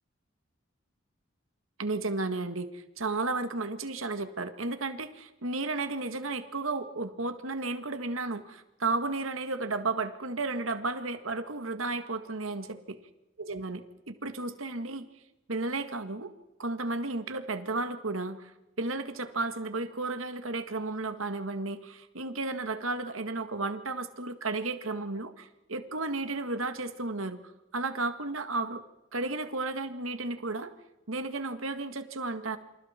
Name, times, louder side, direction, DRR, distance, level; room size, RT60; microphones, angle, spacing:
voice 1, 1.8-12.7 13.4-15.1 15.5-16.3 16.6-18.5 18.8-27.4 27.7-28.8 29.1-30.7 31.1-32.6, right 3 dB, 80° right, 9 dB, 1.8 m, -33 dB
28.5 x 26.5 x 4.4 m, 1.0 s
head